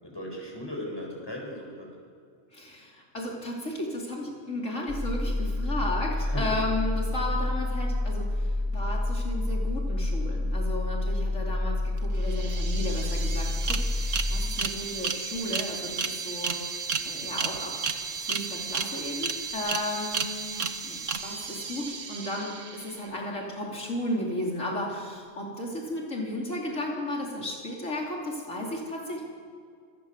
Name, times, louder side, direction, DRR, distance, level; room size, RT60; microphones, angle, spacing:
voice 1, 0.0-1.9 6.3-6.4, equal, 20° left, -1 dB, 7.8 m, -37 dB
voice 2, 2.5-17.7 18.1-29.2, left 1 dB, 80° left, -2 dB, 4.5 m, -34 dB
sound 1, 4.9-14.5, left 1 dB, 15° right, 3.9 m, -28 dB
sound 2, 12.0-12.1 12.2-23.1, right 5 dB, 80° right, 1.8 m, -33 dB
28.5 x 24.5 x 7.8 m, 2.3 s
omnidirectional pair, 1.3 m